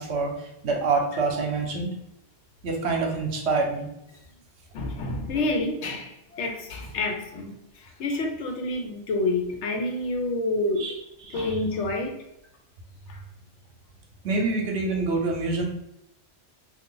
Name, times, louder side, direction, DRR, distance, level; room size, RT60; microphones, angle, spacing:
voice 1, 0.0-1.9 2.6-3.9 10.8-10.9 11.3-11.5 14.2-15.7, right 3 dB, 70° right, 0 dB, 0.9 m, -26 dB
voice 2, 4.7-10.8 11.3-12.2 13.1-13.2, left 2 dB, 80° left, 3 dB, 0.9 m, -28 dB
2.4 x 2.4 x 3.7 m, 0.82 s
omnidirectional pair, 1.2 m